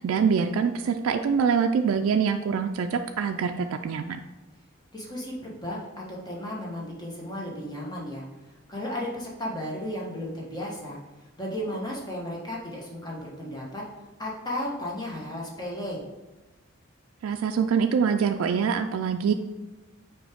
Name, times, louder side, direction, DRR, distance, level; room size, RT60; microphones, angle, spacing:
voice 1, 0.0-4.2 17.2-19.3, right 6 dB, 85° right, 6 dB, 0.3 m, -24 dB
voice 2, 4.9-8.2 8.7-11.0 11.4-13.8 14.2-16.0, left 1 dB, 20° left, -3 dB, 1.2 m, -34 dB
6.1 x 4.7 x 3.5 m, 1.2 s
head